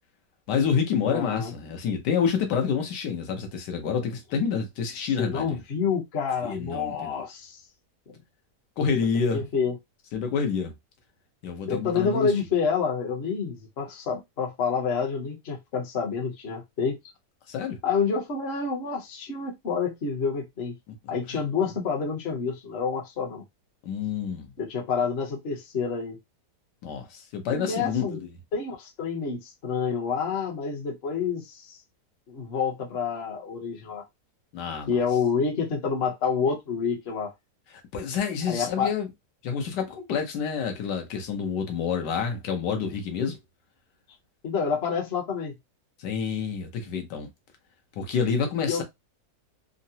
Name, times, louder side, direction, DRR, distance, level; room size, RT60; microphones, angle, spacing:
voice 1, 0.5-5.6 6.4-7.2 8.8-9.4 10.1-10.7 11.4-12.3 17.5-17.8 21.3-21.4 23.8-24.5 26.8-28.3 34.5-34.9 37.9-39.1 39.4-43.4 46.0-47.3 48.0-48.8, left 6 dB, 85° left, 1.4 m, -28 dB
voice 2, 1.0-1.5 5.2-7.6 8.1-8.2 9.1-9.8 11.7-17.0 17.8-20.8 21.1-23.4 24.6-26.2 27.5-28.2 28.5-31.8 32.3-34.0 34.9-37.3 38.5-38.9 44.4-45.5 48.6-48.8, left 5 dB, 45° left, 0.9 m, -28 dB
3.7 x 2.0 x 2.6 m
omnidirectional pair, 1.8 m